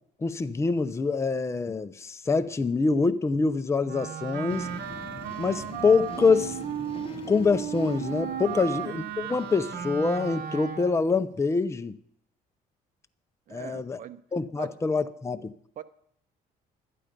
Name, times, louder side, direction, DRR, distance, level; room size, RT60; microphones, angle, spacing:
voice 1, 0.2-4.7 5.4-6.6 7.3-12.0 13.5-14.0 14.3-15.5, left 4 dB, 15° left, 0.6 m, -25 dB
Wind instrument woodwind instrument, 3.8-11.1, right 9 dB, 70° right, 1.1 m, -35 dB
sound 1, 4.5-10.9, left 4 dB, 35° left, 0.9 m, -44 dB
voice 2, 13.5-14.2 14.6-14.8 15.8-15.9, right 11 dB, 50° right, 0.7 m, -42 dB
12.0 x 10.0 x 5.1 m
cardioid pair, 110°, 17 cm